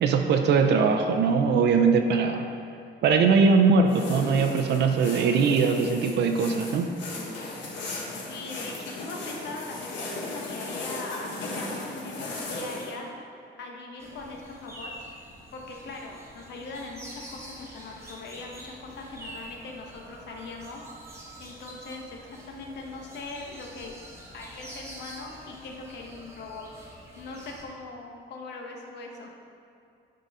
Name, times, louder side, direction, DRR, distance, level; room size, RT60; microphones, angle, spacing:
voice 1, 0.0-2.5 3.0-6.9, right 5 dB, 70° right, 5 dB, 0.5 m, -21 dB
sound 1, 3.9-12.9, left 2 dB, 85° left, 1.5 m, -36 dB
voice 2, 8.3-13.1 13.5-14.9 15.5-20.9 21.4-24.0 24.3-26.6 27.2-29.3, left 3 dB, 70° left, 0 dB, 1.1 m, -40 dB
sound 2, 14.0-27.6, right 1 dB, 15° right, 1.0 m, -46 dB
9.1 x 3.9 x 5.5 m, 2.4 s
cardioid pair, 165°, 19 cm